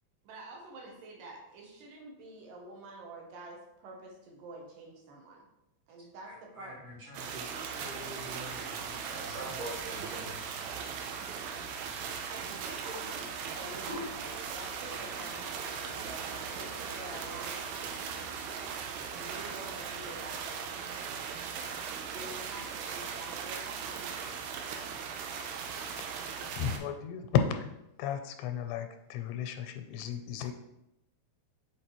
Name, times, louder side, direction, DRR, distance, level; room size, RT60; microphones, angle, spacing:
voice 1, 0.2-5.5 5.9-6.7 12.3-13.3 13.5-18.4 19.1-20.9 22.0-24.6, right 2 dB, 70° right, 0 dB, 2.5 m, -48 dB
voice 2, 6.2-10.4, right 1 dB, 50° right, -8 dB, 1.9 m, -44 dB
sound 1, 7.1-26.8, right 6 dB, 90° right, 2.7 m, -39 dB
Toilet flush, 8.8-20.4, equal, 30° right, 2.5 m, -51 dB
voice 3, 26.5-27.7 28.0-30.5, left 8 dB, 85° left, 6 dB, 2.6 m, -33 dB
6.5 x 5.2 x 3.0 m, 0.87 s
omnidirectional pair, 4.6 m